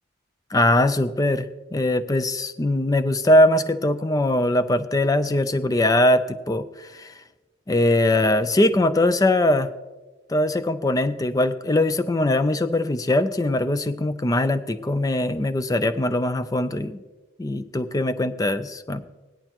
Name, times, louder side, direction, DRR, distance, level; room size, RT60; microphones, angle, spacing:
voice 1, 0.5-7.1 7.7-9.7 10.3-17.0 17.4-19.0, left 1 dB, 20° left, 12 dB, 0.4 m, -21 dB
18.0 x 11.0 x 3.0 m, 1.2 s
head